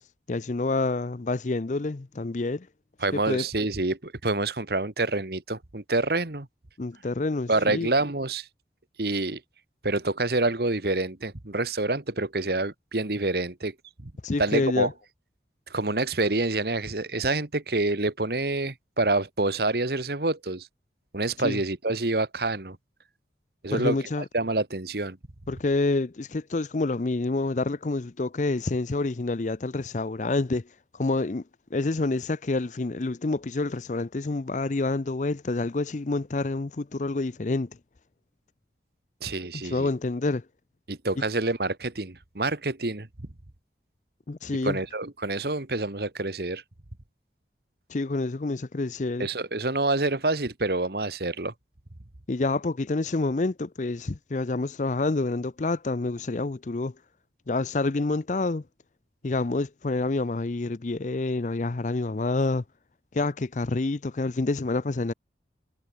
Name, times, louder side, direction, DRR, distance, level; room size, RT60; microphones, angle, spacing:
voice 1, 0.3-2.7 3.1-3.5 6.8-7.9 14.2-14.9 21.4-21.6 23.7-24.3 25.5-30.7 30.9-31.4 31.7-37.7 39.5-40.4 44.3-44.8 47.9-49.3 52.3-56.9 57.5-58.6 59.2-62.6 63.1-65.1, left 2 dB, 45° left, 0.6 m, -28 dB
voice 2, 3.0-6.5 7.5-8.5 9.0-9.4 9.8-13.7 14.0-14.1 14.4-14.9 15.7-20.7 21.1-22.8 23.6-24.0 24.3-25.2 39.2-39.9 40.9-43.1 44.6-46.6 49.2-51.5, right 2 dB, 60° right, 1.6 m, -27 dB
head